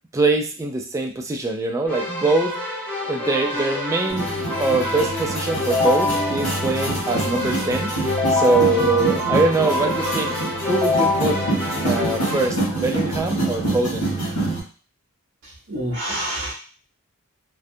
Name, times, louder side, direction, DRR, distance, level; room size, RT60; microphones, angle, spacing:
voice 1, 0.1-2.6 3.0-4.3 4.6-7.9 8.3-10.3 10.6-11.4 11.8-14.1, right 3 dB, 15° right, 2 dB, 0.3 m, -23 dB
Keyboard (musical), 1.9-12.5, left 2 dB, 10° left, 0.8 m, -25 dB
sound 1, 4.1-14.6, right 2 dB, 85° left, 1.4 m, -26 dB
voice 2, 15.4-16.5, right 1 dB, 55° right, -7 dB, 0.7 m, -28 dB
2.6 x 2.3 x 2.5 m, 0.37 s
head